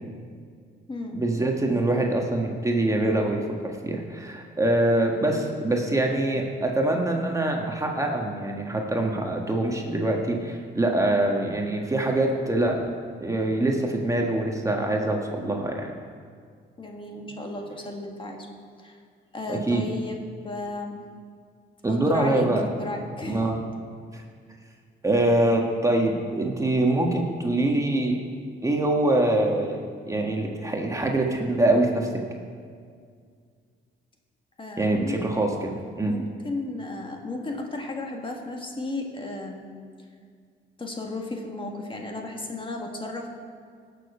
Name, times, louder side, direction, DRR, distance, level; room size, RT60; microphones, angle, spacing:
voice 1, 1.1-12.8 13.2-15.9 19.5-19.8 21.8-22.6 23.3-23.6 24.1-24.2 25.0-28.2 28.6-29.8 30.1-32.1 34.8-35.7 36.0-36.1, right 1 dB, 15° right, 1 dB, 1.5 m, -24 dB
voice 2, 16.8-18.4 18.8-19.0 19.3-21.0 21.9-23.5 34.6-35.2 36.1-39.8 40.8-43.3, left 2 dB, 25° left, 1 dB, 1.7 m, -34 dB
17.5 x 7.0 x 5.5 m, 2.1 s
cardioid pair, 90°, 20 cm